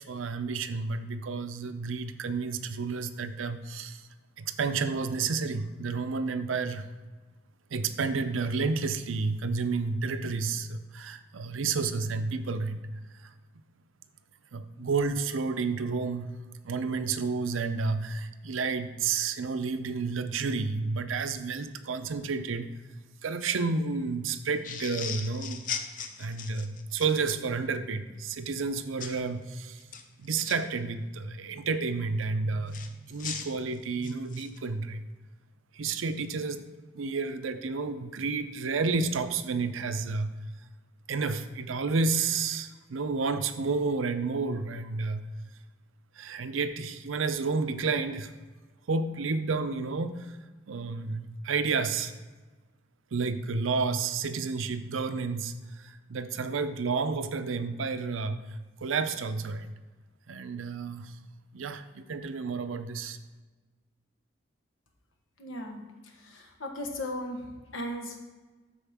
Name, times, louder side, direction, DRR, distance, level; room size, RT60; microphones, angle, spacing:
voice 1, 0.0-4.1 4.4-6.9 7.7-12.8 13.1-13.3 14.5-16.3 16.6-22.7 23.2-25.6 26.2-29.8 30.2-32.8 33.1-35.0 35.7-36.7 36.9-40.3 41.1-45.3 46.2-48.3 48.9-50.4 50.7-52.2 53.1-58.4 58.8-59.7 60.3-61.2 61.5-63.2, right 4 dB, 90° right, 10 dB, 0.6 m, -31 dB
sound 1, 24.6-27.1 29.0-29.2 29.8-30.6 32.7-34.6, left 7 dB, 40° left, 0.5 m, -38 dB
voice 2, 65.4-68.2, left 1 dB, 85° left, 3 dB, 1.3 m, -37 dB
13.0 x 4.3 x 3.5 m, 1.3 s
head